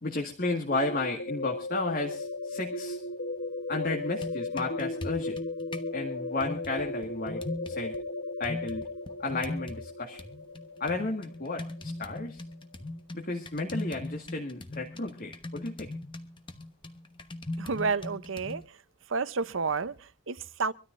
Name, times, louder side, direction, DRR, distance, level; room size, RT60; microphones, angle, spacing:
voice 1, 0.0-3.0 3.7-5.4 5.9-8.0 8.4-8.9 9.2-10.2 10.8-12.4 13.1-15.9, left 2 dB, 45° left, 1.9 m, -33 dB
sound 1, 0.7-12.4, left 2 dB, 70° left, 1.1 m, -36 dB
sound 2, 4.0-5.9 6.4-8.0 8.4-9.9 10.2-18.7, left 1 dB, 25° left, 1.0 m, -40 dB
voice 2, 17.6-18.8 19.1-20.7, right 4 dB, 65° right, 0.7 m, -31 dB
25.0 x 13.0 x 2.6 m
head